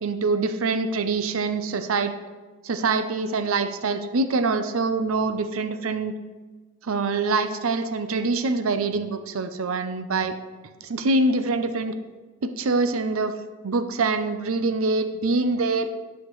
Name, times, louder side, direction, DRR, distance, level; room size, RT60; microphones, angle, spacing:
voice 1, 0.0-2.1 2.6-6.1 6.8-10.3 10.8-11.9 12.4-13.3 13.6-15.9, right 3 dB, 80° right, 10 dB, 0.6 m, -24 dB
10.5 x 5.8 x 3.1 m, 1.3 s
head